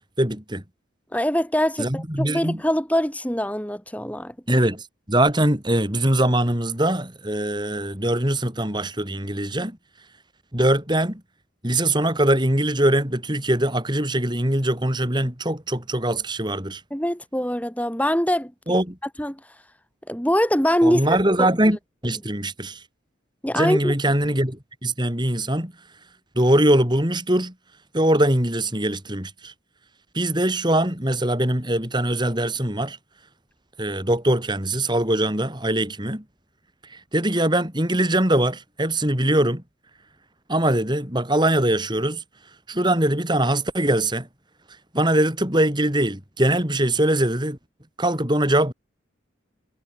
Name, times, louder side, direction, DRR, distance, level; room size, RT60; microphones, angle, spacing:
voice 1, 0.2-0.6 1.8-2.6 4.5-9.8 10.5-11.2 11.6-16.8 18.7-19.0 20.8-21.8 22.0-22.8 23.6-25.7 26.4-27.5 27.9-29.5 30.1-33.0 33.8-36.2 37.1-39.6 40.5-42.2 42.7-44.3 44.9-47.6 48.0-48.7, right 1 dB, 25° right, 5.2 m, -22 dB
voice 2, 1.1-4.3 16.9-18.5 19.2-19.4 20.1-21.5 23.4-23.9, equal, 5° left, 5.0 m, -23 dB
head